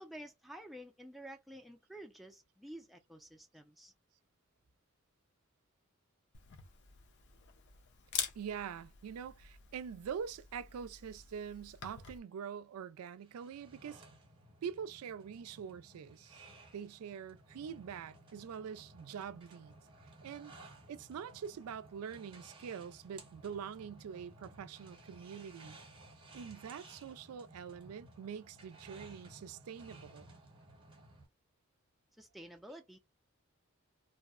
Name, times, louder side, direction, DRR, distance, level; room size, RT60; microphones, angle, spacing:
voice 1, 0.0-3.9 32.2-33.0, right 1 dB, ahead, 0.4 m, -51 dB
Camera, 6.3-12.2, left 7 dB, 55° left, 0.5 m, -46 dB
voice 2, 8.4-14.0 14.6-16.4 16.7-19.8 20.2-20.5 20.9-25.8 26.3-30.3, right 7 dB, 90° right, 0.3 m, -44 dB
sound 1, 13.2-31.3, right 2 dB, 25° right, 0.8 m, -57 dB
2.6 x 2.0 x 2.3 m
head